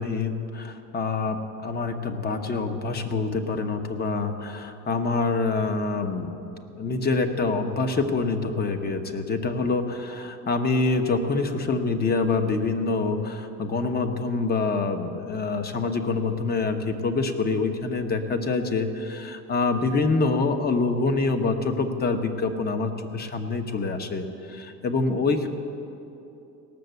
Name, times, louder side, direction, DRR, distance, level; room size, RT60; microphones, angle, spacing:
voice 1, 0.0-6.4 6.8-25.5, left 3 dB, 30° left, 7 dB, 1.0 m, -26 dB
17.5 x 6.7 x 8.1 m, 2.8 s
cardioid pair, 130°, 31 cm